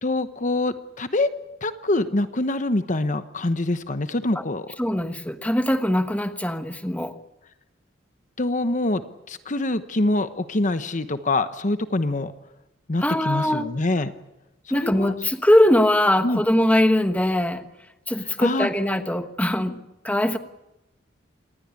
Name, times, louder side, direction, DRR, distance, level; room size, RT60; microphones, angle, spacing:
voice 1, 0.0-1.3 1.6-4.7 8.4-12.3 12.9-14.1 14.7-15.2 16.2-16.4 18.4-18.7, left 2 dB, 40° left, 11 dB, 1.0 m, -25 dB
voice 2, 4.8-7.1 13.0-13.6 14.7-17.6 18.1-19.8 20.0-20.4, left 1 dB, 10° left, 9 dB, 1.3 m, -21 dB
27.0 x 20.0 x 8.4 m, 0.93 s
head